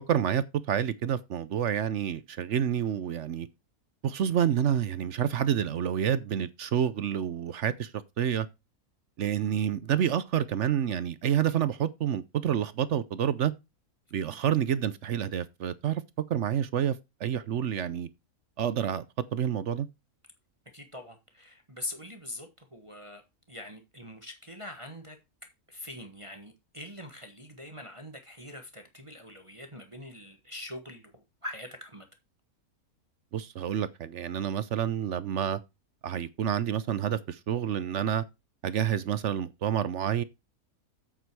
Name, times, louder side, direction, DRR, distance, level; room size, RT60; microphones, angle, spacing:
voice 1, 0.1-3.5 4.0-7.9 8.2-8.5 9.2-13.5 14.1-16.0 16.3-18.1 18.6-19.0 19.3-19.9 33.3-35.6 36.0-38.2 38.6-40.2, right 9 dB, 60° right, 0.9 m, -28 dB
voice 2, 20.7-23.2 23.5-32.1, left 1 dB, 20° right, 1.4 m, -43 dB
8.2 x 7.9 x 4.7 m
omnidirectional pair, 1.6 m